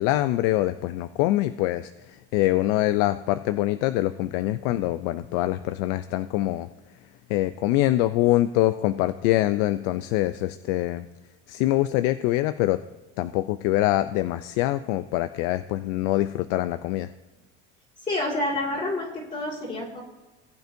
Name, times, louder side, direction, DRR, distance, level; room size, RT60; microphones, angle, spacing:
voice 1, 0.0-6.7 7.3-11.1 11.5-12.8 13.2-17.1, left 15 dB, 85° left, 12 dB, 0.5 m, -24 dB
voice 2, 18.0-20.0, left 2 dB, 25° left, -5 dB, 1.9 m, -28 dB
19.5 x 8.0 x 2.6 m, 1.1 s
cardioid pair, 125°, 31 cm